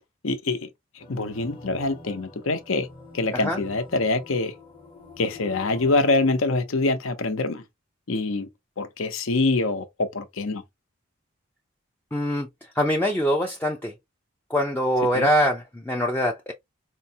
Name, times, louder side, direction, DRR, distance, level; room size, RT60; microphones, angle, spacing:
voice 1, 0.2-0.7 0.9-2.9 3.1-4.5 5.2-7.6 8.1-8.5 8.8-10.6 15.1-15.3, left 3 dB, 75° left, 0.7 m, -25 dB
sound 1, 1.0-6.3, left 3 dB, 25° left, 0.8 m, -45 dB
voice 2, 12.1-12.5 12.8-13.9 14.5-16.5, equal, 10° left, 0.4 m, -23 dB
4.5 x 2.1 x 2.7 m
head